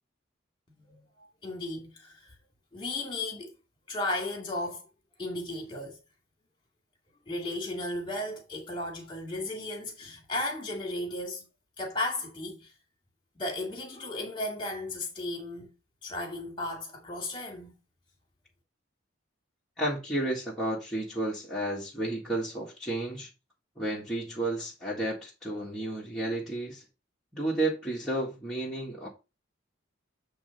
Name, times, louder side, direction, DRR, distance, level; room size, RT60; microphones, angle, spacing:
voice 1, 0.8-2.3 2.7-3.5 3.9-4.9 5.2-6.0 7.3-11.4 11.8-12.7 13.4-15.7 16.0-17.7, left 2 dB, 25° left, 2.2 m, -35 dB
voice 2, 19.8-23.3 23.8-26.8 27.3-29.1, right 1 dB, 5° left, 1.6 m, -32 dB
8.6 x 3.3 x 5.3 m
head